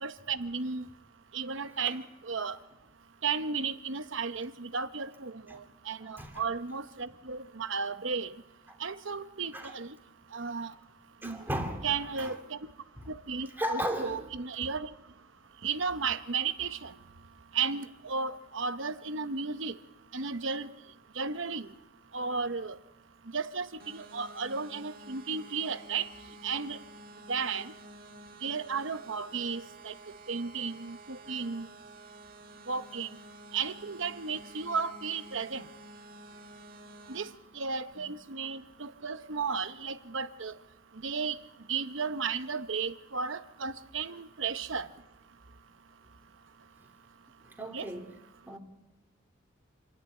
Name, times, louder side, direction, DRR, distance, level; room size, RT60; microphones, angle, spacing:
voice 1, 0.0-0.9 1.3-2.6 3.2-8.3 8.8-9.9 10.3-10.7 11.2-11.4 11.8-12.6 13.1-14.9 15.6-16.9 17.5-19.8 20.1-20.7 21.2-21.7 22.1-22.8 23.3-26.1 26.4-26.8 27.3-27.7 28.4-29.9 30.3-31.7 32.7-33.1 33.5-35.7 37.1-37.3 37.5-40.5 41.0-41.4 41.7-44.9 47.7-47.9, right 5 dB, 65° right, 11 dB, 1.0 m, -34 dB
voice 2, 6.0-6.4 8.7-8.8 9.5-9.7 11.2-11.9 12.2-12.3 13.0-13.1 13.6-14.3 37.9-38.1 47.4-48.1 48.5-48.6, equal, 10° right, 3 dB, 2.7 m, -36 dB
sound 1, 23.8-37.3, right 1 dB, 45° right, 1.7 m, -51 dB
26.5 x 11.0 x 9.2 m, 0.90 s
head